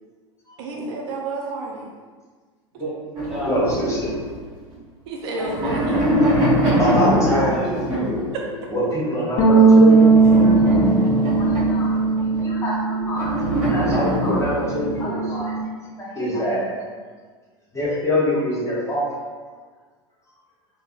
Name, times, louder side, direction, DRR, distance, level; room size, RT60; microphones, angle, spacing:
voice 1, 0.6-2.0 5.1-6.1, right 3 dB, 60° right, -1 dB, 0.4 m, -30 dB
voice 2, 2.8-3.8 5.3-6.0 6.8-8.3, equal, ahead, -8 dB, 1.3 m, -28 dB
sound 1, 3.2-4.7 5.3-8.4 9.9-12.5 13.1-15.1, equal, 35° right, 1.0 m, -23 dB
voice 3, 3.4-4.1 6.8-7.6 8.7-10.1 10.4-10.5 11.3-11.9 12.4-13.3 13.7-15.5 16.0-16.9 17.7-19.1, equal, 20° left, -6 dB, 1.0 m, -24 dB
sound 2, 9.4-13.9 14.2-15.6, right 4 dB, 50° left, 0.6 m, -18 dB
3.3 x 2.1 x 2.6 m, 1.5 s
hypercardioid pair, 85°, 15 cm